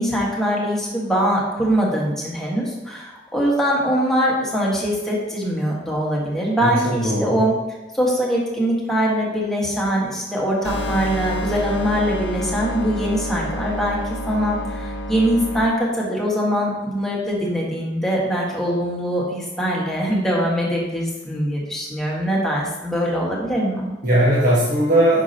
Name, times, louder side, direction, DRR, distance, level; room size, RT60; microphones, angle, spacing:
voice 1, 0.0-7.5 7.9-14.0 14.3-23.9, equal, ahead, -4 dB, 1.5 m, -22 dB
voice 2, 6.6-7.4 24.0-25.2, right 1 dB, 50° right, -7 dB, 1.5 m, -18 dB
sound 1, 10.6-15.6, left 1 dB, 65° left, 0.7 m, -28 dB
8.5 x 5.6 x 2.9 m, 1.1 s
head